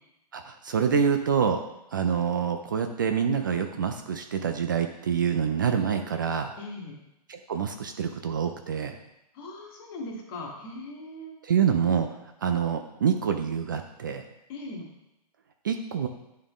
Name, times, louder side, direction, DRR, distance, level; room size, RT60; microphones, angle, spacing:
voice 1, 0.3-1.6 1.9-6.5 7.3-9.0 11.4-12.1 12.4-14.2 15.6-16.1, right 7 dB, 30° right, 6 dB, 0.3 m, -26 dB
voice 2, 6.6-7.0 9.3-11.4 14.5-14.9, left 2 dB, 30° left, -1 dB, 1.6 m, -39 dB
11.0 x 3.7 x 3.6 m, 0.89 s
hypercardioid pair, 165°, 21 cm